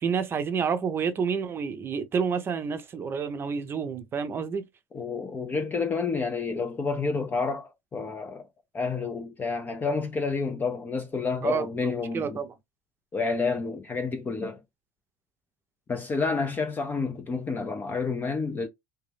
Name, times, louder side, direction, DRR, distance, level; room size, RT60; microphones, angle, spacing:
voice 1, 0.0-4.6 11.4-11.6 12.1-12.5, right 6 dB, 30° right, 0.6 m, -29 dB
voice 2, 4.9-8.5 8.7-12.4 13.1-14.6 15.9-18.7, left 4 dB, 25° left, 0.5 m, -29 dB
2.6 x 2.2 x 3.3 m
supercardioid pair, 100°, 8 cm